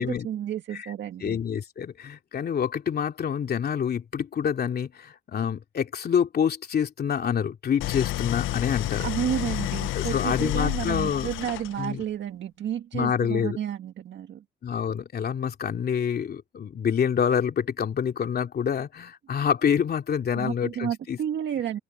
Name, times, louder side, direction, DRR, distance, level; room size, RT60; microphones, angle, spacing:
voice 1, 0.0-1.4 9.0-14.4 20.3-21.8, right 10 dB, 65° right, 1.7 m, -31 dB
voice 2, 1.2-9.1 9.9-11.3 11.8-12.0 12.9-13.6 14.6-21.2, left 7 dB, 50° left, 2.8 m, -27 dB
Idling, 7.8-12.0, left 16 dB, 85° left, 0.6 m, -30 dB
cardioid pair, 90°, 20 cm